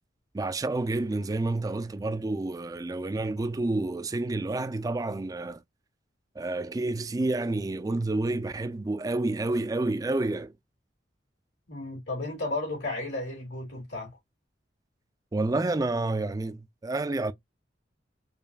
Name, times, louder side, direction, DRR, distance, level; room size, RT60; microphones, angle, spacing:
voice 1, 0.3-5.6 6.4-10.5 15.3-17.3, right 2 dB, 20° right, 0.3 m, -29 dB
voice 2, 11.7-14.1, left 2 dB, 85° left, 2.8 m, -33 dB
5.0 x 2.6 x 2.2 m
head